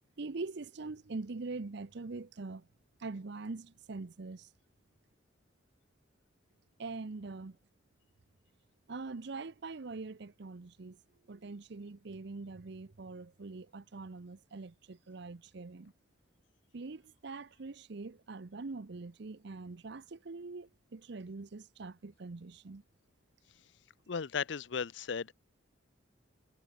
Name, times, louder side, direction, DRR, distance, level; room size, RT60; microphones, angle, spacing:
voice 1, 0.2-2.7 3.0-4.5 6.8-7.6 8.9-11.0 11.3-15.9 16.7-22.8, right 3 dB, 60° right, 0.7 m, -43 dB
voice 2, 24.1-25.3, left 6 dB, 65° left, 0.6 m, -36 dB
head